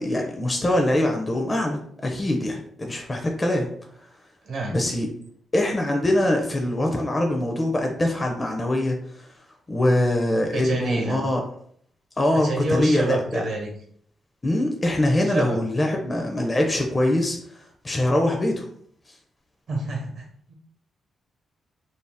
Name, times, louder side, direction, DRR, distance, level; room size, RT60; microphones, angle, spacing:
voice 1, 0.0-3.7 4.7-5.1 5.5-9.2 9.7-11.4 12.2-13.4 14.4-17.4 17.8-18.7, left 1 dB, 25° left, 1 dB, 0.5 m, -23 dB
voice 2, 4.4-4.8 10.5-11.2 12.3-13.7 15.2-15.6 19.7-20.6, right 2 dB, 70° right, 1 dB, 0.9 m, -28 dB
2.6 x 2.0 x 3.3 m, 0.64 s
cardioid pair, 80°, 0 cm